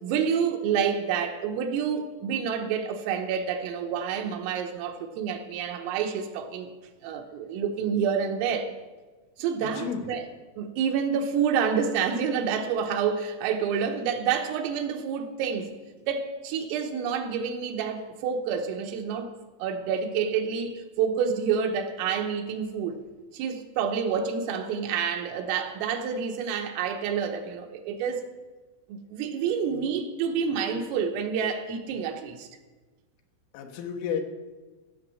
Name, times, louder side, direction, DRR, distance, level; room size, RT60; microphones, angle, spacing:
voice 1, 0.0-6.7 7.0-8.7 9.4-10.3 10.6-15.7 16.0-19.3 19.6-23.0 23.3-28.2 28.9-32.5, right 7 dB, 85° right, 5 dB, 3.6 m, -28 dB
voice 2, 9.6-10.0 33.5-34.2, left 7 dB, 75° left, 3 dB, 3.6 m, -32 dB
16.0 x 6.3 x 7.5 m, 1.3 s
omnidirectional pair, 5.8 m